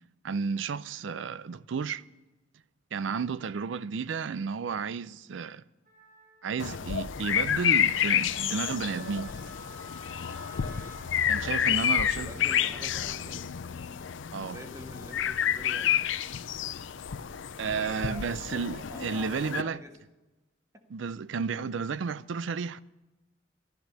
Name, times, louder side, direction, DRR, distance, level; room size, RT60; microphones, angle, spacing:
voice 1, 0.2-2.0 2.9-5.6 6.4-9.3 11.3-12.3 14.3-14.6 17.6-19.8 20.9-22.8, right 5 dB, 85° right, 0.4 m, -32 dB
Wind instrument woodwind instrument, 5.9-11.0, left 1 dB, 45° right, 5.8 m, -51 dB
sound 1, 6.6-19.6, left 9 dB, 85° left, 0.5 m, -30 dB
voice 2, 11.4-11.8 12.1-13.5 14.4-16.0 17.7-18.4 18.7-19.9 20.7-20.8, equal, 15° right, 1.4 m, -46 dB
12.5 x 11.5 x 6.8 m
head